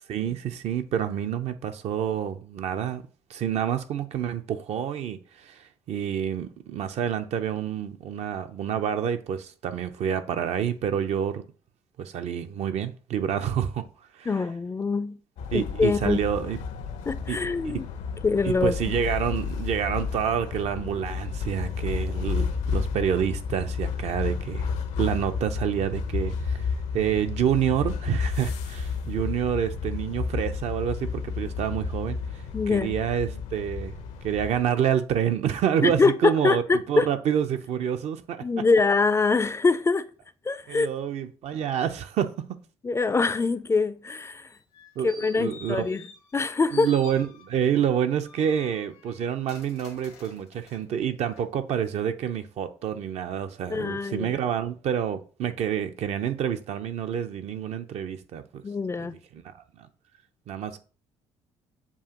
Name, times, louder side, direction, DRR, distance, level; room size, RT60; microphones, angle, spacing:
voice 1, 0.1-3.0 3.3-11.4 12.0-13.8 14.1-14.3 15.5-16.6 17.3-17.7 18.4-24.7 25.0-26.7 26.9-34.0 34.2-38.4 40.7-42.3 45.0-45.1 45.3-45.9 46.7-58.6 59.0-59.9 60.5-60.8, right 9 dB, 60° right, 0.6 m, -28 dB
voice 2, 14.3-15.2 15.5-16.2 17.1-17.9 18.2-18.8 32.5-32.9 35.8-37.1 38.4-40.1 40.5-40.9 42.8-44.5 45.0-46.0 46.3-46.9 53.7-54.3 58.6-59.1, left 4 dB, 20° left, 0.4 m, -24 dB
sound 1, 15.4-34.7, left 5 dB, 70° left, 0.6 m, -32 dB
sound 2, 44.5-46.4 46.7-47.7 48.2-50.8 51.3-51.4, left 4 dB, 90° left, 1.2 m, -49 dB
7.1 x 2.5 x 2.9 m
supercardioid pair, 65°, 13 cm